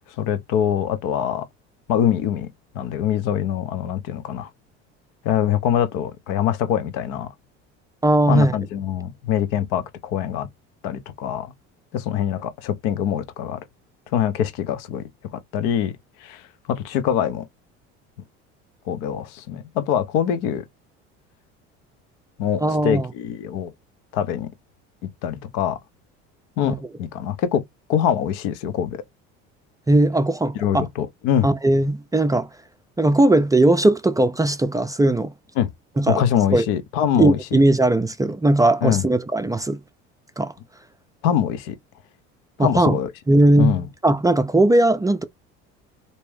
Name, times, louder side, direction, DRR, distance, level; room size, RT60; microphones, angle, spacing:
voice 1, 0.2-1.5 1.9-2.5 2.7-4.5 5.2-7.3 8.3-10.5 10.8-11.5 11.9-13.6 14.1-15.0 15.3-15.9 16.2-17.5 18.9-20.6 22.4-23.7 24.1-24.5 25.0-25.8 26.6-27.6 27.9-29.0 30.5-31.5 35.6-35.7 36.1-37.6 38.8-39.0 41.2-41.8 42.6-43.1 43.6-43.8, left 9 dB, 70° left, 0.8 m, -24 dB
voice 2, 8.0-8.5 22.6-23.1 26.6-26.8 29.9-30.9 31.4-32.5 33.0-35.3 36.0-36.2 36.5-36.7 37.2-39.8 40.4-40.5 42.6-43.0 43.3-45.2, right 1 dB, 10° right, 0.4 m, -18 dB
3.4 x 2.8 x 3.2 m
hypercardioid pair, 75°, 34 cm